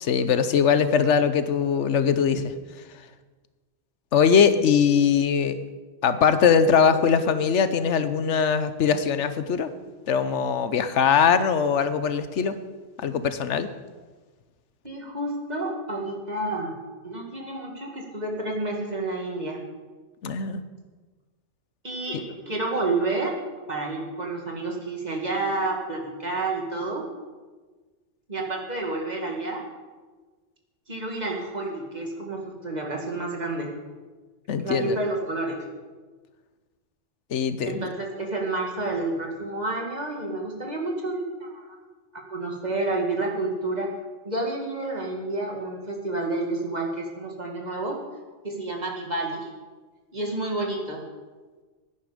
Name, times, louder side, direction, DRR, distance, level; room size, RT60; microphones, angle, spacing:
voice 1, 0.0-2.5 4.1-5.6 6.0-9.7 10.1-12.5 13.0-13.7 20.2-20.6 34.5-35.0 37.3-37.9, left 7 dB, 85° left, 11 dB, 1.1 m, -21 dB
voice 2, 14.8-16.8 17.0-19.6 21.8-23.4 23.7-27.0 28.3-29.6 30.9-33.7 34.6-35.6 37.7-41.7 42.1-43.9 44.2-48.0 48.4-49.5 50.1-51.0, right 2 dB, 35° right, 0 dB, 2.3 m, -29 dB
16.5 x 9.7 x 5.1 m, 1.4 s
omnidirectional pair, 1.2 m